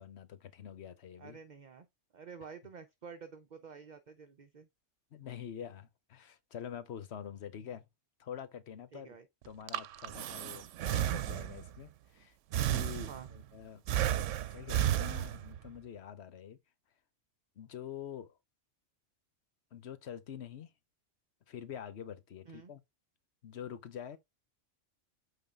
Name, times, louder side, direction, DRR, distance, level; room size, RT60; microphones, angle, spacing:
voice 1, 0.0-1.4 5.1-7.8 8.2-9.2 9.4-13.8 14.5-16.6 17.6-18.4 19.7-20.7 21.5-22.8 23.4-24.2, left 9 dB, 65° left, 1.1 m, -46 dB
voice 2, 1.2-1.9 2.1-4.7 8.9-9.3 13.1-13.3 22.5-22.7, right 6 dB, 45° right, 0.8 m, -50 dB
Breathing, 9.5-11.8 12.5-13.4 13.9-15.7, right 11 dB, 90° right, 0.9 m, -33 dB
8.8 x 3.9 x 3.7 m
omnidirectional pair, 1.2 m